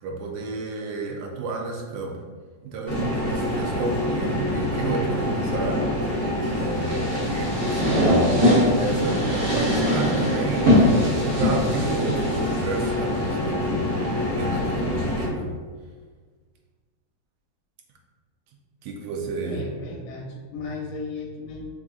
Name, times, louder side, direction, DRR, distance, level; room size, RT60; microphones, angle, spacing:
voice 1, 0.0-2.2 2.6-6.1 6.6-13.9 14.3-15.5 18.8-19.6, right 3 dB, 80° right, 1 dB, 1.3 m, -31 dB
sound 1, 2.9-15.3, left 1 dB, 35° left, 0.9 m, -26 dB
sound 2, 6.8-12.9, left 1 dB, 40° right, 0.9 m, -22 dB
voice 2, 19.5-21.7, left 3 dB, 70° left, 0 dB, 1.2 m, -35 dB
4.9 x 2.8 x 2.4 m, 1.5 s
omnidirectional pair, 2.0 m